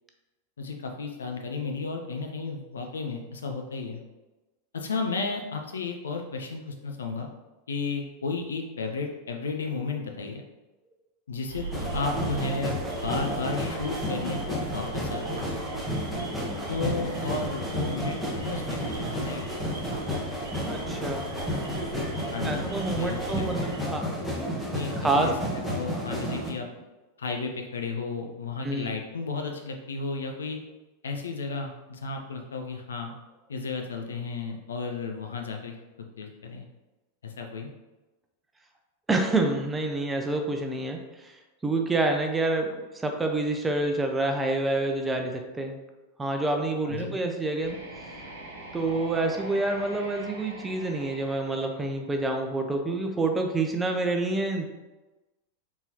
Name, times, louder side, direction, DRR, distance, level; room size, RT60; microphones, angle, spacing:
voice 1, 0.6-4.0 4.7-7.3 7.7-10.4 11.3-15.5 16.7-19.5 22.3-23.7 24.7-25.3 25.7-26.7 27.2-30.6 31.0-33.1 33.5-36.6 37.2-37.7 46.8-47.1, left 4 dB, 70° left, 3 dB, 0.6 m, -33 dB
sound 1, 11.5-23.8, right 4 dB, 60° right, 1.2 m, -40 dB
sound 2, 11.7-26.5, equal, 5° left, 0.9 m, -32 dB
voice 2, 20.7-21.2 22.4-24.0 25.0-25.3 28.6-28.9 39.1-41.3 41.6-45.8 46.2-47.8 48.7-54.7, right 2 dB, 10° right, 3 dB, 0.5 m, -27 dB
sound 3, 47.6-52.5, right 1 dB, 80° right, 1.1 m, -43 dB
4.1 x 3.7 x 2.9 m, 1.1 s
figure-of-eight pair, 90°, 0 cm